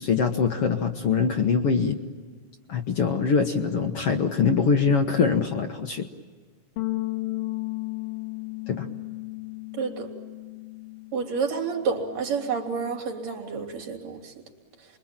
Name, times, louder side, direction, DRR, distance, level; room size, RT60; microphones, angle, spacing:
voice 1, 0.0-2.0 2.7-6.1 8.7-8.9, left 5 dB, 55° left, 4 dB, 1.8 m, -23 dB
sound 1, 6.8-11.3 11.6-13.0, left 21 dB, 85° left, 3.2 m, -35 dB
voice 2, 9.7-10.1 11.1-14.3, right 5 dB, 55° right, 3 dB, 4.4 m, -29 dB
29.0 x 23.0 x 8.8 m, 1.5 s
omnidirectional pair, 3.9 m